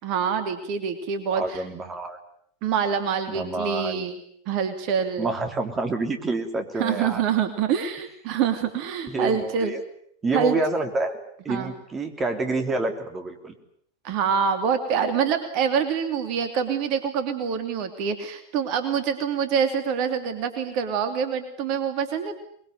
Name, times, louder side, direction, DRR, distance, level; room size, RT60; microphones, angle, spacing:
voice 1, 0.0-1.6 2.6-4.2 4.5-5.3 6.8-9.7 10.3-10.6 11.5-11.7 14.0-22.3, right 7 dB, 40° right, 8 dB, 2.8 m, -25 dB
voice 2, 1.3-2.2 3.3-4.0 5.2-7.2 9.1-9.8 10.2-11.2 11.4-13.5, right 3 dB, 20° right, 6 dB, 3.3 m, -28 dB
23.5 x 22.5 x 9.4 m, 0.67 s
figure-of-eight pair, 90°, 0 cm